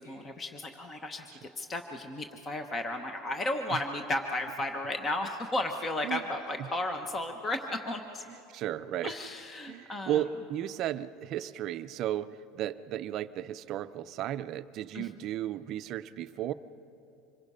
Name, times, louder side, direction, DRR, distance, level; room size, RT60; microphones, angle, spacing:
voice 1, 0.0-8.2 9.0-10.2 14.9-15.1, left 2 dB, 20° left, 5 dB, 0.9 m, -34 dB
voice 2, 8.5-9.1 9.7-16.5, right 11 dB, 40° right, 12 dB, 0.5 m, -34 dB
26.0 x 22.0 x 5.5 m, 2.8 s
cardioid pair, 165°, 0 cm